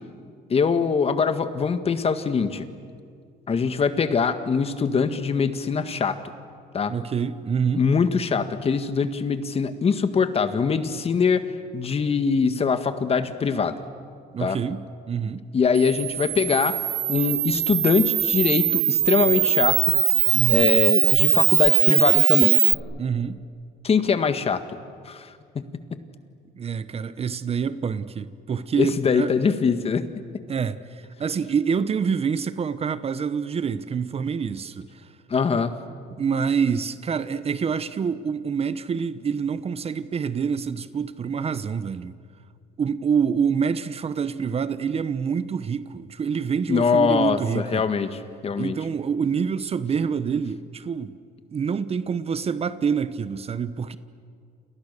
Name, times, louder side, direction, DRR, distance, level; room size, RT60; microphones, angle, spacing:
voice 1, 0.5-2.7 3.5-6.2 6.7-6.9 7.8-13.8 14.4-14.6 15.5-16.8 17.1-19.8 20.5-22.6 23.8-24.6 25.1-25.3 25.6-25.7 28.8-30.1 35.3-35.7 46.7-48.8, left 5 dB, 35° left, 1.8 m, -23 dB
voice 2, 6.9-7.8 14.3-15.4 20.3-20.7 23.0-23.4 26.6-29.3 30.5-35.1 36.2-42.1 42.8-47.8 48.6-51.1 51.5-54.0, right 6 dB, 35° right, 1.0 m, -26 dB
Camera, 15.7-22.7, right 13 dB, 65° right, 1.2 m, -20 dB
29.5 x 28.0 x 6.8 m
cardioid pair, 110°, 17 cm